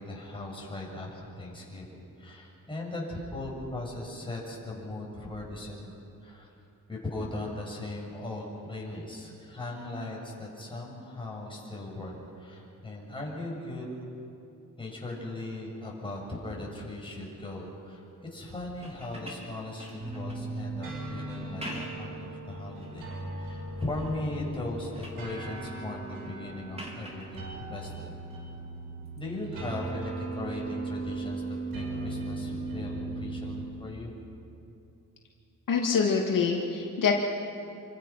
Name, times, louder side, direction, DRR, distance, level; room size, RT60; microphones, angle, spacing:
voice 1, 0.0-5.9 6.2-6.5 6.9-13.9 14.8-18.0 18.3-23.1 23.3-28.1 29.2-31.4 31.7-34.1, left 2 dB, 15° left, -3 dB, 6.8 m, -38 dB
sound 1, 18.8-20.5 21.4-22.1 22.6-23.3 23.8-24.2 24.6-25.3 26.7-27.3 29.0-29.2, equal, 20° right, 3.8 m, -44 dB
sound 2, 20.0-33.7, right 2 dB, 80° right, 6.8 m, -38 dB
voice 2, 35.7-37.2, left 5 dB, 70° left, -1 dB, 2.5 m, -25 dB
27.5 x 25.0 x 5.9 m, 2.7 s
cardioid pair, 125°, 34 cm